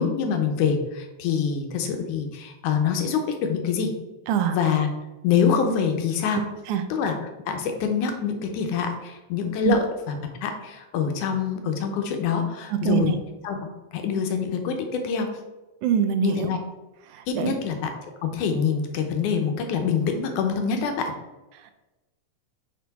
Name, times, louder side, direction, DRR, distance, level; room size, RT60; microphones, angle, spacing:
voice 1, 0.0-3.9 4.5-4.9 5.2-6.4 6.9-7.2 7.5-13.1 13.4-13.6 13.9-15.3 16.2-16.6 17.3-17.9 18.2-21.1, left 6 dB, 80° left, 4 dB, 2.2 m, -25 dB
voice 2, 4.3-4.6 6.3-6.4 6.7-6.8 9.6-9.7 12.7-13.1 15.8-16.5 17.1-17.5, right 9 dB, 80° right, 8 dB, 2.0 m, -24 dB
6.0 x 4.4 x 4.1 m, 1.1 s
omnidirectional pair, 3.6 m